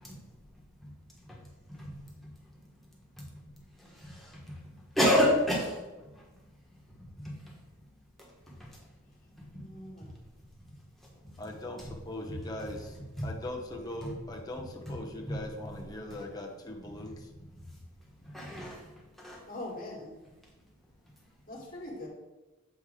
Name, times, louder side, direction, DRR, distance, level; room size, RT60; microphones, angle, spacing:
voice 1, 5.0-5.7 9.5-9.6 13.2-13.3 18.3-18.8 19.2-19.4, left 1 dB, ahead, -4 dB, 1.3 m, -26 dB
voice 2, 9.6-10.1 19.5-20.1 21.5-22.1, left 1 dB, 45° left, -2 dB, 1.6 m, -41 dB
voice 3, 11.1-17.3, left 1 dB, 20° left, 0 dB, 0.7 m, -41 dB
7.6 x 3.1 x 4.8 m, 1.1 s
head